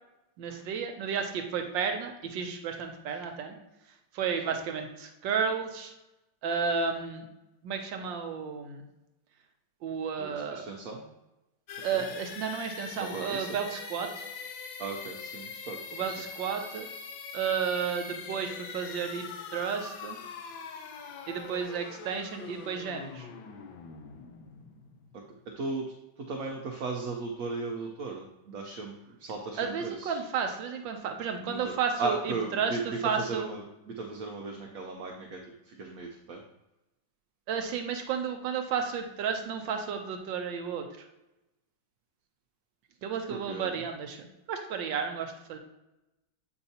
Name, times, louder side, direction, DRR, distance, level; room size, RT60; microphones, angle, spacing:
voice 1, 0.4-3.5 4.1-5.9 6.4-7.3 7.6-8.9 9.8-10.7 11.8-14.3 15.9-16.9 17.3-19.3 19.5-20.2 21.3-23.3 29.6-33.5 37.5-40.9 43.0-45.6, right 6 dB, 80° right, 5 dB, 1.3 m, -32 dB
voice 2, 10.2-11.0 11.9-12.0 13.0-13.5 14.8-15.8 16.1-16.2 25.1-30.2 31.4-31.7 32.0-35.4 35.6-36.4 43.3-43.8, right 3 dB, 60° right, 1 dB, 1.0 m, -37 dB
sound 1, 11.7-25.4, left 5 dB, 85° left, 1.5 m, -43 dB
7.8 x 5.2 x 2.8 m, 0.98 s
omnidirectional pair, 2.1 m